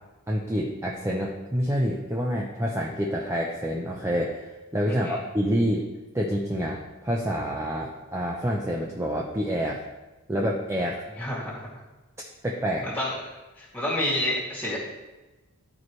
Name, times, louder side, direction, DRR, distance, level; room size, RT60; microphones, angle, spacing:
voice 1, 0.3-5.8 6.1-9.8 10.3-11.0 12.4-12.9, equal, 15° right, -2 dB, 0.6 m, -27 dB
voice 2, 4.9-5.2 11.2-11.8 12.8-14.8, left 1 dB, 5° left, -6 dB, 2.3 m, -30 dB
12.5 x 4.5 x 3.2 m, 1.1 s
head